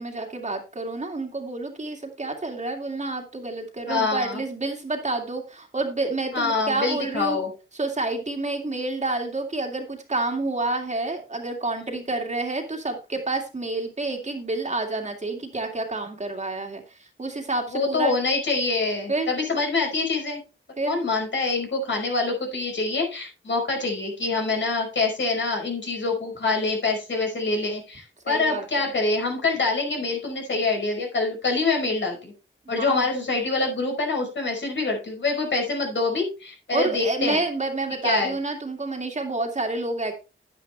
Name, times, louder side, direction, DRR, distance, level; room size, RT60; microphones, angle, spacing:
voice 1, 0.0-7.4 7.7-18.2 19.1-19.3 20.8-21.0 28.3-28.8 32.7-33.1 36.7-40.1, right 2 dB, 35° right, 3 dB, 2.2 m, -29 dB
voice 2, 3.9-4.4 6.3-7.5 17.7-20.4 20.9-32.3 32.7-37.4 38.0-38.3, left 3 dB, 60° left, 1 dB, 5.3 m, -25 dB
10.5 x 10.0 x 3.3 m, 0.32 s
wide cardioid pair, 120°, 21 cm